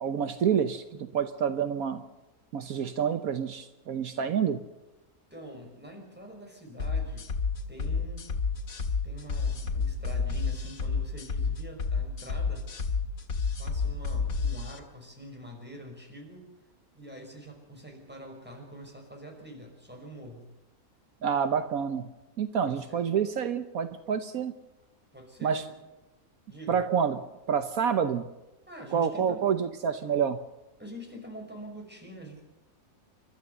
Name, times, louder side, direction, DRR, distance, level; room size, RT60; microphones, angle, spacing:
voice 1, 0.0-2.0 2.5-4.6 21.2-22.1 22.4-24.5 25.4-25.6 26.7-27.2 27.5-28.3 28.9-30.4, right 7 dB, 75° right, 9 dB, 1.4 m, -28 dB
voice 2, 5.3-7.3 7.7-8.3 9.0-12.7 13.6-16.5 16.9-20.5 22.6-23.0 25.1-25.7 26.5-26.9 28.7-29.4 30.8-32.4, equal, 5° right, 1 dB, 5.6 m, -45 dB
sound 1, 6.8-14.8, left 4 dB, 75° left, 2.2 m, -30 dB
29.5 x 13.0 x 6.8 m, 1.0 s
omnidirectional pair, 1.5 m